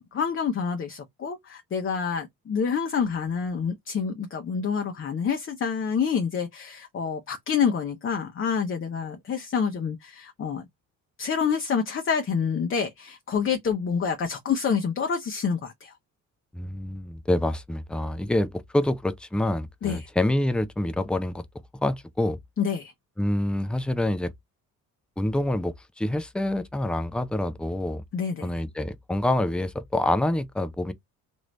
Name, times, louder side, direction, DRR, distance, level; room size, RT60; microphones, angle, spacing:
voice 1, 0.1-10.6 11.2-15.9 19.8-20.0 22.6-22.9 28.1-28.5, left 6 dB, 25° left, 0.7 m, -27 dB
voice 2, 16.5-21.4 21.7-22.4 23.2-24.3 25.2-28.0 28.4-30.9, left 1 dB, ahead, 0.4 m, -26 dB
3.0 x 2.6 x 3.0 m
figure-of-eight pair, 50°, 46 cm